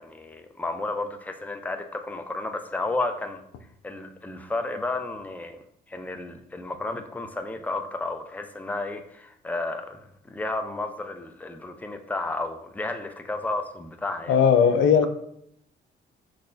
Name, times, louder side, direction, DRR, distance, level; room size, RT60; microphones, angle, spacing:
voice 1, 0.0-3.4 3.8-5.6 5.9-14.4, left 2 dB, 10° left, 6 dB, 0.5 m, -32 dB
voice 2, 14.3-15.1, left 7 dB, 80° left, 8 dB, 0.5 m, -18 dB
6.3 x 3.2 x 2.6 m, 0.72 s
cardioid pair, 90°, 20 cm